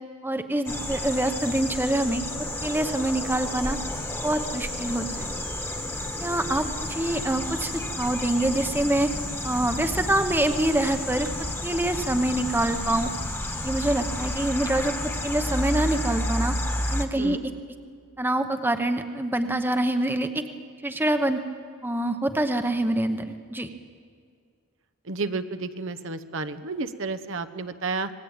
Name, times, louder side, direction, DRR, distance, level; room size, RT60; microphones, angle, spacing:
voice 1, 0.2-3.8 4.2-5.3 6.2-9.1 9.4-11.3 11.6-13.1 13.5-16.5 16.9-17.4 18.2-20.4 20.8-21.4 21.8-23.7, right 1 dB, 10° right, 7 dB, 1.0 m, -25 dB
sound 1, 0.7-17.1, left 1 dB, 10° left, 1.5 m, -31 dB
voice 2, 25.0-28.1, right 3 dB, 60° right, 10 dB, 0.9 m, -31 dB
26.5 x 19.5 x 8.9 m, 2.1 s
head